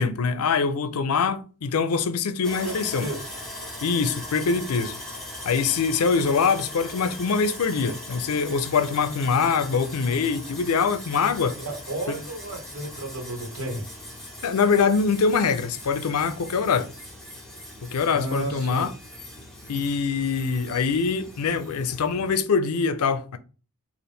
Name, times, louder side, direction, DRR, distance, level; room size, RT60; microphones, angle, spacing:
voice 1, 0.0-3.1 3.8-5.0 5.4-11.6 12.1-12.2 14.4-16.9 17.8-18.9 19.7-23.4, left 5 dB, 85° left, 0.5 m, -24 dB
Sawing, 2.4-22.3, left 1 dB, ahead, 0.9 m, -40 dB
voice 2, 2.6-3.3 11.6-13.9 18.1-18.9, right 1 dB, 80° right, 1.3 m, -33 dB
3.9 x 2.5 x 3.4 m
head